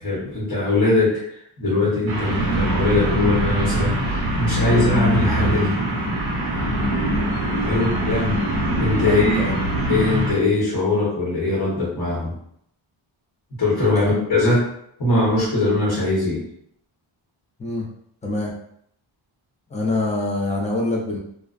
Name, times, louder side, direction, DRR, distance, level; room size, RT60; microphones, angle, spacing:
voice 1, 0.0-1.2 1.6-5.8 7.6-8.4 8.8-9.4 9.9-12.3 13.6-14.7 15.0-16.4, left 2 dB, 50° left, -7 dB, 1.1 m, -21 dB
sound 1, 2.1-10.3, right 1 dB, 70° right, 0.8 m, -23 dB
voice 2, 9.1-9.6 13.9-14.1 17.6-17.8 18.2-18.5 19.7-21.2, left 2 dB, 15° left, -2 dB, 0.5 m, -25 dB
2.4 x 2.2 x 2.3 m, 0.69 s
wide cardioid pair, 100°, 49 cm